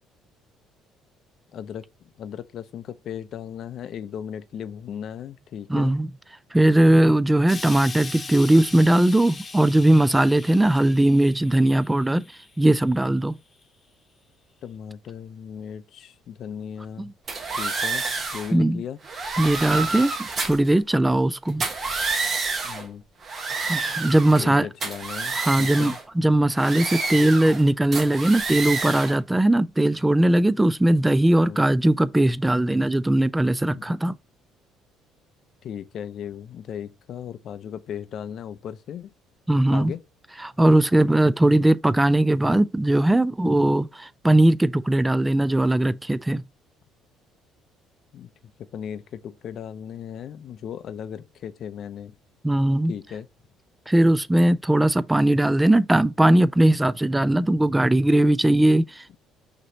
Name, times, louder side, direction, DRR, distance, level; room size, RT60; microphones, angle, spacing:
voice 1, 1.5-1.9 2.2-5.9 14.6-17.1 17.6-18.0 18.3-19.0 22.6-23.0 24.4-26.0 31.4-31.6 33.7-33.9 35.6-39.1 39.7-40.0 48.1-48.3 48.7-52.1 52.9-53.3, left 8 dB, 60° left, 0.5 m, -36 dB
voice 2, 5.7-6.1 6.5-12.2 12.6-13.3 17.0-17.1 18.5-18.8 19.4-21.6 23.5-24.7 25.3-34.2 39.5-39.9 40.4-46.4 52.4-52.9 53.9-59.2, right 1 dB, 10° right, 0.3 m, -19 dB
Explosion, 7.5-12.8 13.6-13.7, left 4 dB, 25° left, 1.0 m, -40 dB
sound 1, 17.3-18.5 19.0-20.7 21.5-22.9 23.2-24.5 24.8-26.0 26.6-27.6 27.9-29.2, right 4 dB, 40° right, 1.1 m, -29 dB
5.9 x 3.0 x 2.8 m
supercardioid pair, 80°, 0 cm